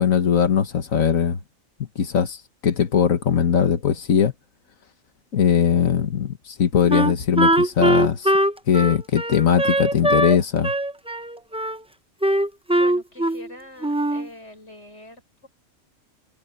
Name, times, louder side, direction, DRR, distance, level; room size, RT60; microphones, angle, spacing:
voice 1, 0.0-1.4 2.0-4.3 5.3-8.3 8.7-10.7, left 8 dB, 85° left, 1.9 m, -20 dB
Wind instrument woodwind instrument, 6.9-10.4 10.6-11.8 12.2-13.5 13.8-14.3, right 1 dB, 10° right, 0.3 m, -21 dB
voice 2, 12.7-15.5, left 1 dB, 55° left, 7.1 m, -43 dB
omnidirectional pair, 1.4 m